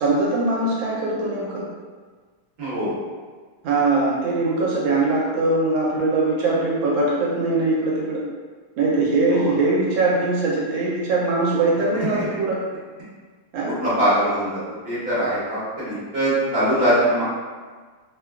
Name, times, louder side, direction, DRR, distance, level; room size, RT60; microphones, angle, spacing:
voice 1, 0.0-1.6 3.6-8.2 8.8-12.6 13.5-13.7, right 2 dB, 80° right, -5 dB, 1.3 m, -21 dB
voice 2, 2.6-3.0 9.3-9.5 12.1-12.2 13.6-14.6 14.8-17.2, right 1 dB, 35° right, -11 dB, 1.1 m, -22 dB
3.3 x 2.2 x 2.3 m, 1.5 s
omnidirectional pair, 2.2 m